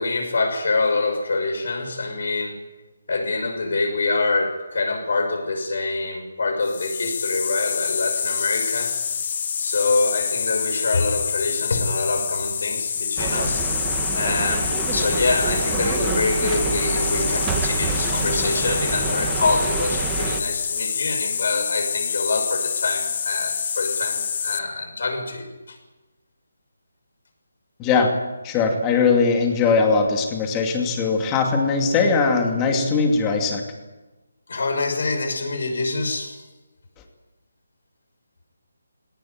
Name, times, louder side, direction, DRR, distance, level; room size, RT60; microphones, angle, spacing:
voice 1, 0.0-2.6 3.1-8.9 9.6-13.6 14.1-25.8 34.5-36.4, left 3 dB, 60° left, 5 dB, 6.2 m, -25 dB
sound 1, 6.6-24.6, left 7 dB, 40° left, 1.3 m, -26 dB
sound 2, 13.2-20.4, right 6 dB, 15° right, 1.5 m, -28 dB
voice 2, 27.8-28.1 28.4-33.6, left 4 dB, 15° left, 3 dB, 2.6 m, -20 dB
18.5 x 18.0 x 9.6 m, 1.2 s
hypercardioid pair, 165°, 0 cm